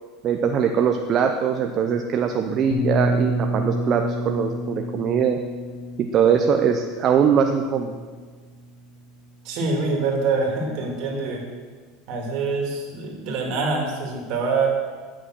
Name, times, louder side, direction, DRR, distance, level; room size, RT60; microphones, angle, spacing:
voice 1, 0.2-5.4 6.1-8.0, right 7 dB, 40° right, 5 dB, 0.7 m, -21 dB
sound 1, 2.7-8.5, equal, 55° left, 1.5 m, -28 dB
voice 2, 9.4-11.4 12.1-14.7, right 4 dB, 60° right, 1 dB, 2.5 m, -25 dB
9.8 x 6.3 x 6.1 m, 1.5 s
supercardioid pair, 115°, 0 cm